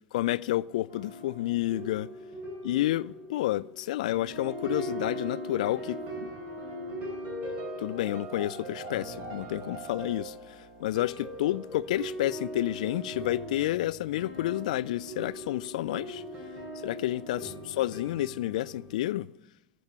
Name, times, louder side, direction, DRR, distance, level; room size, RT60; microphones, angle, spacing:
voice 1, 0.1-2.1 2.6-6.3 7.8-16.2 16.8-19.3, left 15 dB, 60° left, 0.3 m, -30 dB
sound 1, 0.9-19.0, equal, 40° right, 3.9 m, -40 dB
13.5 x 7.8 x 6.8 m
figure-of-eight pair, 80°, 4 cm